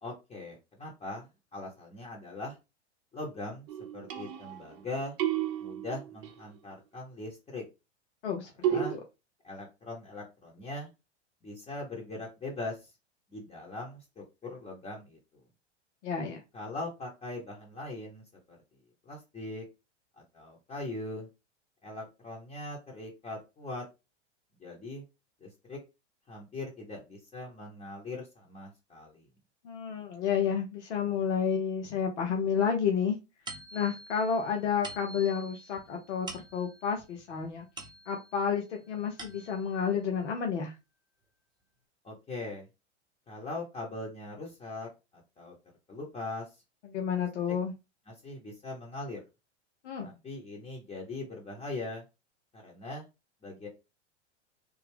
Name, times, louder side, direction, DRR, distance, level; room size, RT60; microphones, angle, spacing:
voice 1, 0.0-2.6 3.1-3.7 3.9-5.2 5.6-7.6 8.7-9.0 9.4-10.9 11.4-12.9 13.3-15.2 16.5-18.6 19.0-19.6 20.3-21.3 21.8-23.8 24.6-25.0 25.4-25.8 26.3-29.2 42.0-42.7 43.3-45.5 45.9-46.6 47.1-47.2 48.1-49.2 50.0-52.0 52.5-53.1 53.4-53.7, left 2 dB, 20° left, -2 dB, 1.1 m, -40 dB
sound 1, 3.7-4.8 5.2-6.4 8.6-9.0, right 11 dB, 45° right, 0.7 m, -32 dB
voice 2, 8.2-9.0 16.0-16.4 29.6-33.2 33.7-37.6 38.1-40.7 46.9-47.7 49.8-50.1, left 7 dB, 70° left, 2 dB, 0.9 m, -30 dB
sound 2, 33.5-38.4 38.9-39.8, right 2 dB, 10° right, 0.9 m, -47 dB
3.4 x 2.2 x 3.5 m, 0.26 s
hypercardioid pair, 105°, 36 cm